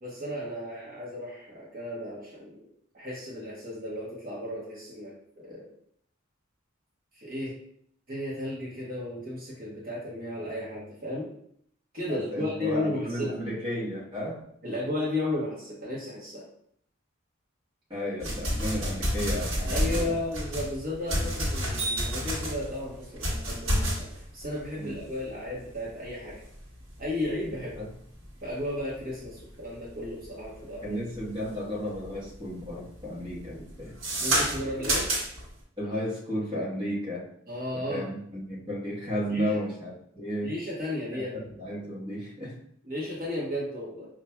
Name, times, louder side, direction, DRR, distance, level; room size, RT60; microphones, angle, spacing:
voice 1, 0.0-2.6 2.9-5.7 7.1-7.5 8.1-11.3 11.9-13.4 14.6-16.4 19.7-24.1 24.3-26.4 27.0-27.8 28.4-31.0 34.2-35.1 37.5-38.0 39.3-39.5 40.4-41.4 42.9-44.1, left 1 dB, 45° right, -6 dB, 1.0 m, -34 dB
voice 2, 12.1-14.4 17.9-20.2 24.8-25.0 27.8-27.9 30.8-33.9 35.8-37.3 37.7-40.6 41.1-41.2 41.6-42.6, equal, 25° right, -8 dB, 1.1 m, -33 dB
sound 1, 18.2-31.5 31.9-32.4 32.6-35.5, right 1 dB, 75° right, 1.3 m, -30 dB
5.5 x 2.4 x 2.2 m, 0.67 s
head